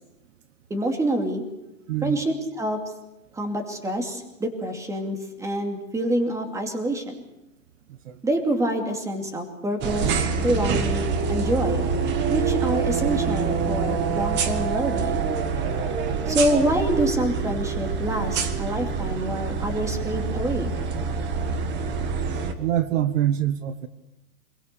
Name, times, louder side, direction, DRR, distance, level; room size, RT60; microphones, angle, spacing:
voice 1, 0.7-1.4 2.0-2.8 3.3-7.2 8.2-11.9 12.3-15.3 16.3-20.7, right 1 dB, 5° right, 4 dB, 2.6 m, -26 dB
voice 2, 1.9-2.2 8.0-8.2 22.6-23.9, right 12 dB, 55° right, 13 dB, 1.4 m, -24 dB
sound 1, 9.8-22.5, right 5 dB, 25° right, 1.7 m, -26 dB
26.0 x 22.0 x 6.9 m, 0.93 s
hypercardioid pair, 150°, 45 cm